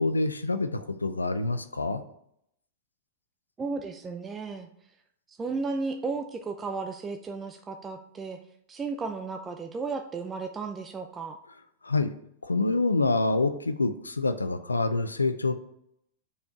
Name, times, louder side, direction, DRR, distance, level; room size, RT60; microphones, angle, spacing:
voice 1, 0.0-2.0 11.8-12.1 12.4-15.5, left 3 dB, 90° left, 11 dB, 0.4 m, -26 dB
voice 2, 3.6-4.7 5.3-8.4 8.7-11.4, right 4 dB, 20° right, 5 dB, 0.5 m, -34 dB
5.5 x 4.4 x 4.7 m, 0.74 s
figure-of-eight pair, 100°, 0 cm